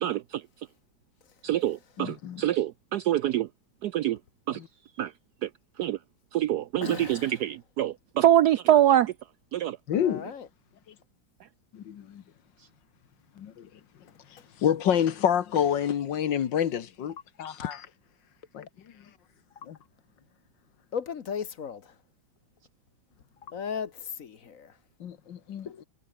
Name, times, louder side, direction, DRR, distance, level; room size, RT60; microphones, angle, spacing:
voice 1, 0.0-0.4 1.4-3.5 3.8-4.2 4.5-4.6 5.0-5.1 5.4-5.5 5.8-6.0 6.3-9.1 9.5-9.8, right 12 dB, 75° right, 0.9 m, -24 dB
voice 2, 2.0-2.5 4.5-4.7 9.9-10.2 11.7-12.2 13.4-13.7 14.6-17.8 18.5-18.7 19.7-19.8 25.0-25.7, left 9 dB, 65° left, 1.9 m, -28 dB
voice 3, 6.8-7.5 9.9-10.5 14.4-14.5 17.5-17.7 20.9-22.0 23.4-24.8 25.7-25.8, left 7 dB, 50° left, 1.3 m, -37 dB
omnidirectional pair, 2.2 m